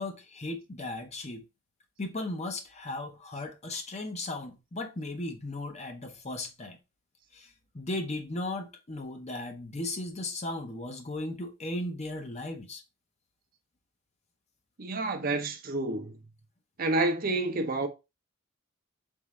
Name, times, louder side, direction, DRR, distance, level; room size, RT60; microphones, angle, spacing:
voice 1, 0.0-1.4 2.0-6.8 7.3-7.5 7.7-12.8, left 2 dB, 35° left, 0.7 m, -36 dB
voice 2, 14.8-16.2 16.8-17.9, right 2 dB, 45° right, 0.6 m, -29 dB
3.9 x 3.6 x 3.1 m
head